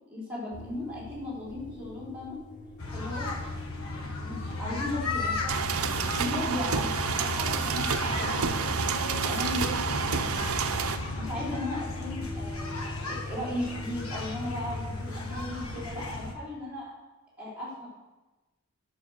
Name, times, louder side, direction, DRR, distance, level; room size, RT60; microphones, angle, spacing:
voice 1, 0.1-2.4 2.9-3.4 3.9-8.7 9.2-9.7 11.1-12.7 13.0-16.9 17.4-17.9, left 1 dB, 5° right, -8 dB, 4.0 m, -36 dB
sound 1, 0.5-15.8, equal, 35° left, 1.0 m, -45 dB
sound 2, 2.8-16.4, left 2 dB, 75° left, 1.3 m, -35 dB
sound 3, 5.5-11.0, right 5 dB, 80° right, 0.7 m, -29 dB
10.0 x 6.4 x 6.5 m, 1.1 s
head